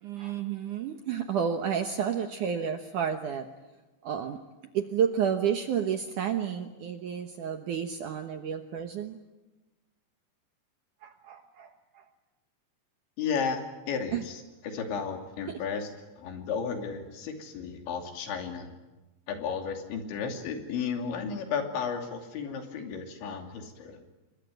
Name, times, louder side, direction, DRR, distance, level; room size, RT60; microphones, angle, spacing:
voice 1, 0.0-3.5 4.0-4.4 4.7-9.2 11.0-12.0 14.1-14.2 15.5-15.6, right 8 dB, 70° right, 6 dB, 2.0 m, -31 dB
voice 2, 13.2-15.9 16.2-18.7 19.3-24.0, left 6 dB, 90° left, 4 dB, 5.1 m, -33 dB
27.5 x 23.0 x 9.3 m, 1.1 s
omnidirectional pair, 5.1 m